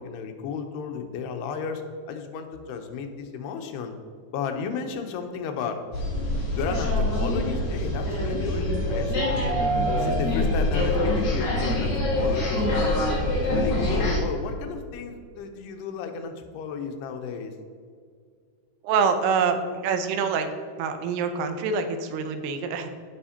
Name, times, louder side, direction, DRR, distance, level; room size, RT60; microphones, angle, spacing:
voice 1, 0.0-3.9 4.3-5.8 6.6-9.6 10.0-13.0 13.3-17.5, left 5 dB, 85° left, 5 dB, 2.9 m, -33 dB
sound 1, 5.9-14.2, left 1 dB, 50° left, 3.4 m, -25 dB
voice 2, 18.8-20.5 20.8-22.9, right 5 dB, 85° right, 7 dB, 2.8 m, -25 dB
16.0 x 5.6 x 2.9 m, 2.1 s
omnidirectional pair, 4.6 m